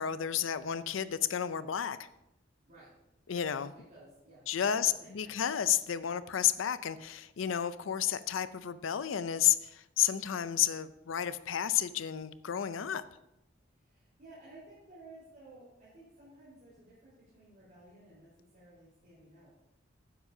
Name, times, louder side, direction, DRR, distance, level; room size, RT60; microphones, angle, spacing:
voice 1, 0.0-2.1 3.3-3.7 4.5-13.0, left 10 dB, 85° left, 0.5 m, -31 dB
voice 2, 3.9-5.4 13.8-19.6, right 2 dB, 45° right, 4.2 m, -55 dB
12.0 x 9.9 x 2.7 m
head